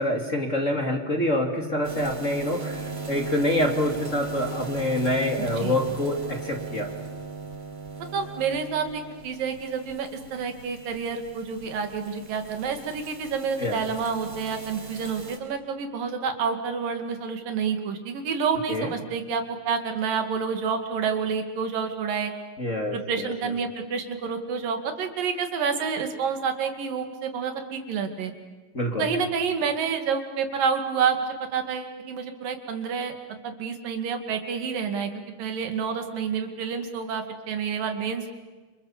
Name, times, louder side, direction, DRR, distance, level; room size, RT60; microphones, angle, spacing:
voice 1, 0.0-6.9 13.6-13.8 18.7-18.9 22.6-23.5 28.7-29.1, left 1 dB, 25° left, 3 dB, 2.7 m, -26 dB
sound 1, 1.8-15.4, right 4 dB, 45° right, 5.9 m, -37 dB
voice 2, 5.4-5.8 8.1-22.3 22.9-28.3 29.0-35.1 35.4-38.3, right 6 dB, 90° right, 6 dB, 3.9 m, -29 dB
29.0 x 27.5 x 7.3 m, 1.3 s
omnidirectional pair, 3.8 m